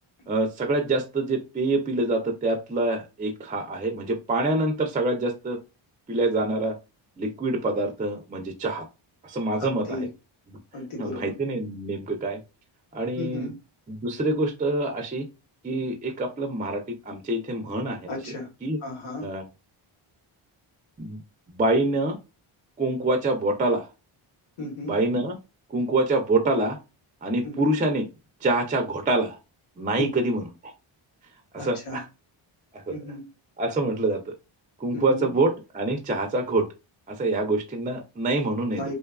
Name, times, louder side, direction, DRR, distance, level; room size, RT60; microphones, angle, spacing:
voice 1, 0.3-5.6 6.1-6.7 7.2-8.9 9.2-10.0 11.0-12.4 12.9-13.5 13.9-15.2 15.6-18.2 18.6-18.8 19.2-19.4 21.0-21.2 21.5-22.2 22.8-23.9 24.9-25.4 25.7-26.8 27.2-28.1 28.4-29.4 29.8-30.7 31.5-32.0 32.7-33.0 33.6-34.3 34.8-36.6 37.1-38.8, right 2 dB, 20° right, 4 dB, 0.3 m, -26 dB
voice 2, 9.6-10.1 10.7-11.3 13.2-13.5 18.1-18.5 18.8-19.3 24.6-24.9 27.4-27.6 30.0-30.3 31.6-32.0 32.9-33.2 34.9-35.3 38.8-38.9, left 1 dB, 85° left, 0 dB, 1.2 m, -34 dB
2.6 x 2.3 x 2.3 m, 0.28 s
cardioid pair, 90°, 50 cm